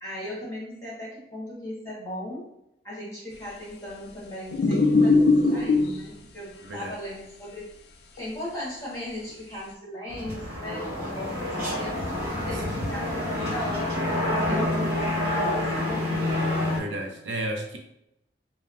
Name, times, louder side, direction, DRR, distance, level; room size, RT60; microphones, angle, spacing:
voice 1, 0.0-2.5 2.8-7.7 8.1-13.9 14.2-16.3, left 1 dB, 20° left, -8 dB, 1.1 m, -37 dB
sound 1, 4.5-6.0 8.2-8.3, left 3 dB, 60° left, 0.3 m, -20 dB
voice 2, 6.6-7.0 12.4-12.6 13.3-13.6 16.8-17.8, right 1 dB, 80° right, 2 dB, 0.5 m, -33 dB
sound 2, 10.1-16.8, left 1 dB, 55° right, 1.0 m, -28 dB
3.2 x 2.0 x 2.4 m, 0.83 s
head